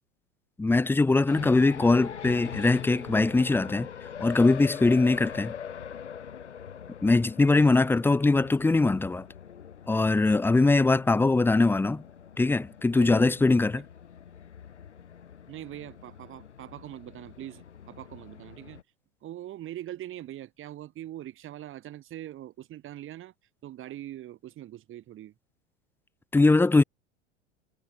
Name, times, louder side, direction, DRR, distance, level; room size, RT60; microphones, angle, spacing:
voice 1, 0.6-3.9 4.2-5.5 7.0-9.3 9.9-12.0 12.4-13.8 26.3-26.8, left 3 dB, 5° left, 1.0 m, -22 dB
sound 1, 1.3-18.8, left 8 dB, 70° left, 6.5 m, -43 dB
voice 2, 7.5-8.1 12.9-13.4 13.7-13.9 15.5-18.8 19.2-23.3 23.6-25.3, right 13 dB, 35° right, 7.5 m, -42 dB
figure-of-eight pair, 85°, 36 cm